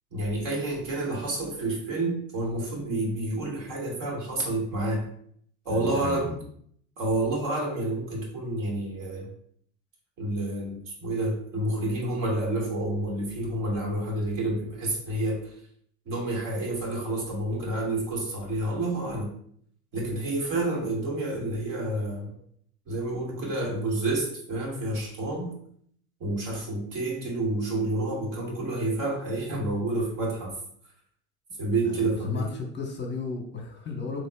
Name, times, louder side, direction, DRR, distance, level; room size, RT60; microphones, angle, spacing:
voice 1, 0.1-5.1 5.7-6.3 7.0-9.3 10.2-15.5 16.1-19.3 19.9-22.3 22.9-25.6 26.2-30.5 31.6-32.5, right 2 dB, 55° right, -1 dB, 2.0 m, -29 dB
voice 2, 5.7-6.4 31.8-34.3, left 4 dB, 25° left, 1 dB, 1.0 m, -34 dB
7.6 x 3.0 x 2.3 m, 0.65 s
supercardioid pair, 115°, 40 cm